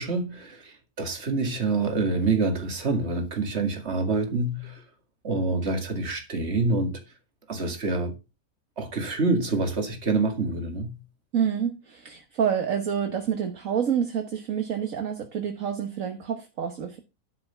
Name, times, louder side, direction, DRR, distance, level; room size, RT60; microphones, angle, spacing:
voice 1, 0.0-4.8 5.2-7.0 7.5-8.1 8.8-11.0, right 3 dB, 45° right, 2.4 m, -26 dB
voice 2, 11.3-17.0, right 8 dB, 60° right, 1.7 m, -28 dB
11.5 x 5.9 x 5.6 m
omnidirectional pair, 1.6 m